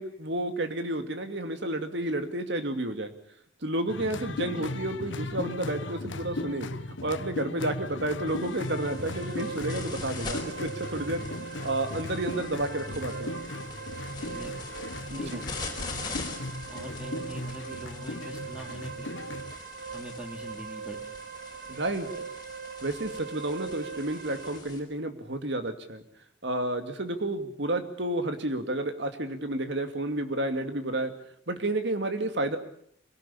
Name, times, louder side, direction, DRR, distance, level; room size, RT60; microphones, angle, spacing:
voice 1, 0.0-3.1 3.6-6.7 7.0-11.2 11.6-13.3 15.1-15.4 21.7-22.3 22.8-26.0 26.4-31.1 31.5-32.6, right 1 dB, 65° right, 7 dB, 2.4 m, -31 dB
sound 1, 3.9-19.6, left 2 dB, 80° left, 1.2 m, -37 dB
sound 2, 8.3-24.8, left 3 dB, 25° left, 4.7 m, -43 dB
sound 3, 8.3-24.6, right 6 dB, 50° right, 1.2 m, -41 dB
voice 2, 14.2-14.5 15.2-15.4 16.7-19.2 19.9-21.0, equal, 5° right, 4 dB, 2.5 m, -42 dB
25.0 x 18.0 x 8.6 m, 0.67 s
head